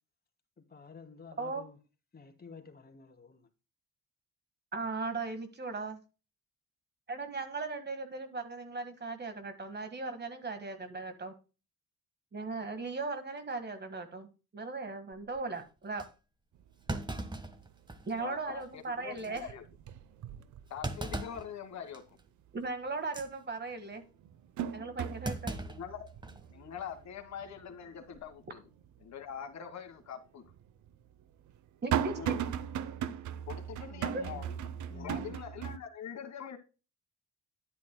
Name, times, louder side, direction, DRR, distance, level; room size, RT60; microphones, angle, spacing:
voice 1, 0.6-1.8 2.1-3.5 33.9-34.4 34.9-35.4, left 5 dB, 30° left, 2.5 m, -50 dB
voice 2, 4.7-6.0 7.1-11.3 12.3-14.3 14.5-16.0 18.1-19.5 22.5-24.0 24.7-25.5 31.8-32.4 34.1-34.2, right 3 dB, 35° right, 1.7 m, -38 dB
Thump thud, 15.1-15.4 16.0-16.1 16.9-18.2 18.6-18.7 19.2-19.4 20.8-21.5 21.9-22.2 23.0-23.3 25.2-26.5 26.8-26.9 28.0-28.3, right 2 dB, 15° right, 1.4 m, -39 dB
sound 1, 16.6-16.7 17.1-17.6 18.0-18.8 19.1-21.3 21.7-21.8 23.3-23.4 23.9-29.0 29.4-29.5 30.4-35.8, right 9 dB, 70° right, 0.8 m, -38 dB
voice 3, 18.2-19.6 20.7-22.0 25.6-26.1 26.5-28.6 29.0-30.4 32.2-32.3 33.5-34.6 34.9-36.6, left 8 dB, 65° left, 1.7 m, -44 dB
10.5 x 9.4 x 2.2 m
cardioid pair, 90°, 30 cm